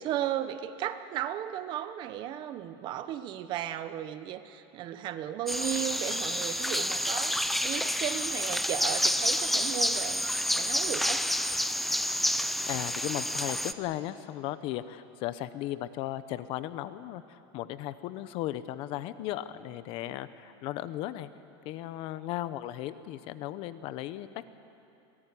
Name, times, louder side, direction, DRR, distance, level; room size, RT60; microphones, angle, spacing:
voice 1, 0.0-10.3 10.6-11.3, right 11 dB, 35° right, 11 dB, 1.0 m, -35 dB
sound 1, 5.5-13.7, equal, ahead, 0.6 m, -29 dB
voice 2, 12.7-21.3 21.6-24.6, left 13 dB, 45° left, 14 dB, 0.9 m, -36 dB
23.5 x 18.5 x 9.9 m, 2.7 s
supercardioid pair, 155°, 13 cm